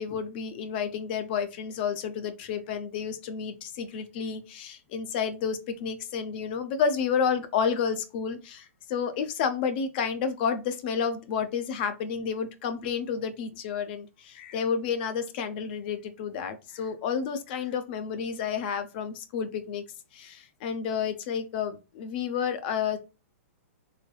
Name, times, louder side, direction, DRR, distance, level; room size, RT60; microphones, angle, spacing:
voice 1, 0.0-19.8 20.1-23.0, left 6 dB, 40° left, 10 dB, 0.6 m, -30 dB
3.7 x 3.3 x 2.2 m, 0.29 s
hypercardioid pair, 155°, 8 cm